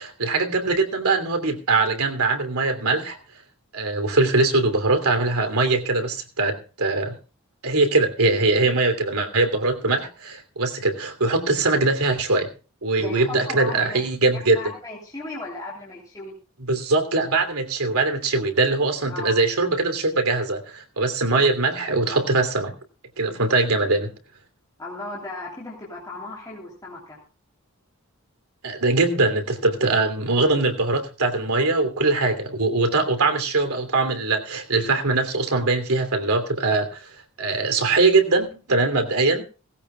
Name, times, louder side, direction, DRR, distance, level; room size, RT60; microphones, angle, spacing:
voice 1, 0.0-3.2 3.7-7.2 7.6-12.5 12.8-14.6 16.6-22.7 23.2-24.1 28.6-37.1 37.4-39.4, right 3 dB, 85° right, 7 dB, 2.9 m, -22 dB
voice 2, 13.0-14.0 14.5-16.4 19.1-19.3 24.8-27.2, left 2 dB, 15° left, -4 dB, 3.2 m, -36 dB
18.5 x 16.0 x 2.3 m, 0.34 s
head